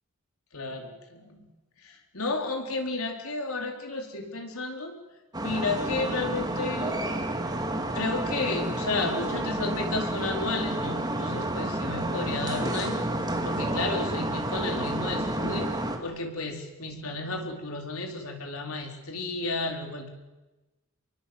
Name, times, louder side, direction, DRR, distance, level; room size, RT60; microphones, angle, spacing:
voice 1, 0.5-1.5 1.8-4.9 5.4-6.9 7.9-13.1 13.4-15.7 16.0-20.1, left 3 dB, 80° left, 3 dB, 4.5 m, -32 dB
sound 1, 5.3-16.0, right 1 dB, 20° right, 2.6 m, -30 dB
27.0 x 23.5 x 8.1 m, 1.1 s
head